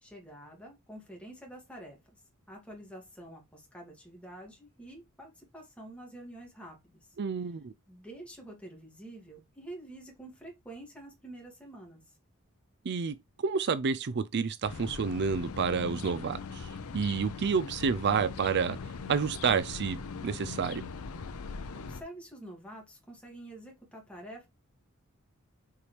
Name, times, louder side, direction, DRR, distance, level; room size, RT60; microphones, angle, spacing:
voice 1, 0.0-2.0 2.5-7.1 7.9-12.2 21.7-24.5, right 1 dB, 5° left, 2.5 m, -47 dB
voice 2, 7.2-7.7 12.8-18.8 19.1-20.0 20.2-20.8, right 5 dB, 50° right, 0.5 m, -29 dB
sound 1, 14.6-22.0, left 4 dB, 75° left, 0.7 m, -41 dB
6.9 x 4.7 x 3.4 m
head